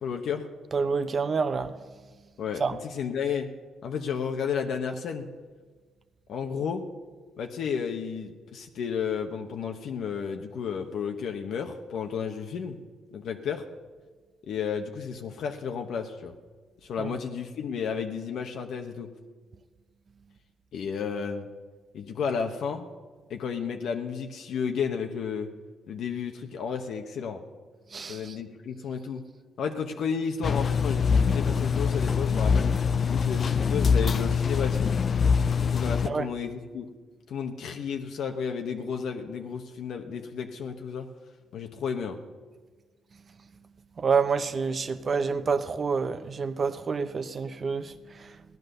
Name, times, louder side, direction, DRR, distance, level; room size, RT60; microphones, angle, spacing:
voice 1, 0.0-0.4 2.4-3.5 3.8-5.3 6.3-6.8 7.4-12.8 13.1-13.6 14.4-16.3 16.8-19.1 20.7-21.5 21.9-22.9 23.3-25.5 25.9-27.4 28.1-29.2 29.6-32.7 33.1-35.0 35.7-36.9 37.3-41.1 41.5-42.2, left 6 dB, 70° left, 1.0 m, -32 dB
voice 2, 0.7-1.8 2.6-2.8 17.0-17.2 27.9-28.3 36.0-36.3 44.0-48.4, right 5 dB, 40° right, 0.8 m, -28 dB
sound 1, 30.4-36.1, left 6 dB, 45° left, 0.5 m, -24 dB
16.0 x 11.0 x 6.6 m
cardioid pair, 90°, 0 cm